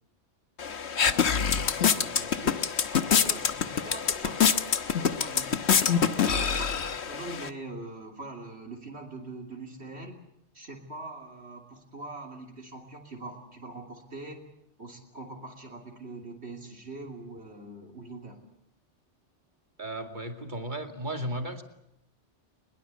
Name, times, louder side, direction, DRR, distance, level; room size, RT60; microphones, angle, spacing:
sound 1, 0.6-7.5, left 7 dB, 65° left, 1.4 m, -26 dB
voice 1, 1.1-2.6 2.9-4.6 5.0-6.3 6.6-10.2 10.5-14.4 14.8-18.4, right 2 dB, 65° right, 2 dB, 3.3 m, -43 dB
voice 2, 19.8-21.6, right 1 dB, 40° right, 5 dB, 2.5 m, -34 dB
22.5 x 22.5 x 8.3 m, 0.79 s
omnidirectional pair, 1.2 m